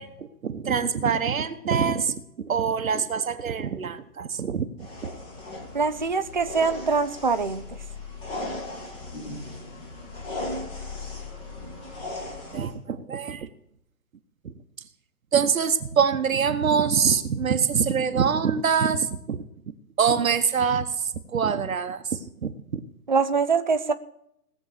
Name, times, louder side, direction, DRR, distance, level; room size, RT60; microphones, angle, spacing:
voice 1, 0.0-4.7 5.0-5.1 12.5-13.5 14.4-14.5 15.3-19.4 20.0-22.8, right 6 dB, 55° right, 9 dB, 1.1 m, -25 dB
sound 1, 4.8-12.7, left 2 dB, 10° left, 1.2 m, -37 dB
voice 2, 5.7-7.8 23.1-23.9, right 5 dB, 30° right, 10 dB, 0.4 m, -24 dB
17.5 x 7.2 x 6.6 m, 0.76 s
figure-of-eight pair, 140°, 48 cm